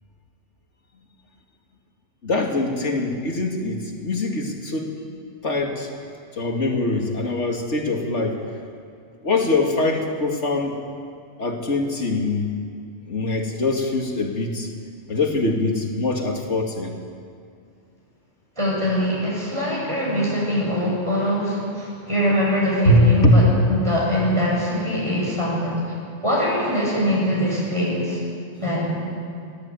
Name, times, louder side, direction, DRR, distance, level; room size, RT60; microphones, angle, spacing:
voice 1, 2.2-4.9 5.4-5.9 6.3-8.4 9.2-10.7 11.4-12.5 13.1-14.7 15.1-16.9 22.9-23.4, left 2 dB, 90° left, 2 dB, 2.7 m, -22 dB
voice 2, 18.6-25.8 26.2-28.2 28.6-29.0, equal, 25° right, -5 dB, 8.0 m, -23 dB
22.5 x 17.0 x 9.2 m, 2.3 s
omnidirectional pair, 1.2 m